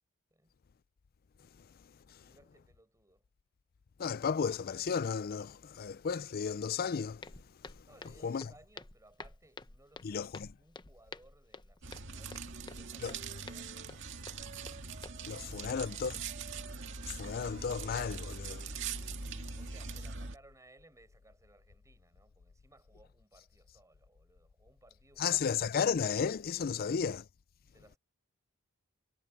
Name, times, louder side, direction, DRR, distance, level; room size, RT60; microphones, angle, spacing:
voice 1, 2.2-3.3 7.8-14.6 15.3-16.0 19.5-25.9 26.7-27.0 27.7-28.0, right 2 dB, 15° right, 5.6 m, -63 dB
voice 2, 4.0-7.2 8.2-8.5 10.0-10.5 13.0-13.1 15.3-16.1 17.1-18.7 25.2-27.2, left 6 dB, 45° left, 0.4 m, -33 dB
Walk footsteps, 7.2-15.1, left 3 dB, 20° left, 0.9 m, -51 dB
sound 1, 11.8-20.4, right 4 dB, 60° right, 2.1 m, -42 dB
Wind instrument woodwind instrument, 12.0-15.6 15.8-19.7, right 3 dB, 40° right, 3.5 m, -57 dB
head